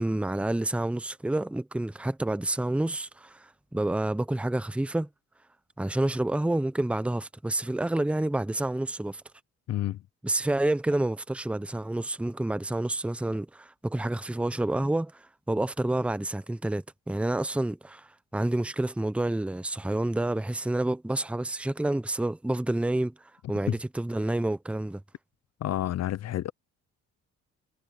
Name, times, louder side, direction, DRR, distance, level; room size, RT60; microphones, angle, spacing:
voice 1, 0.0-5.1 5.8-9.2 10.2-18.1 18.3-23.1 23.5-25.0, right 1 dB, 5° right, 0.8 m, -29 dB
voice 2, 9.7-10.0 23.7-23.8 25.6-26.5, left 13 dB, 60° left, 0.6 m, -29 dB
cardioid pair, 90°, 30 cm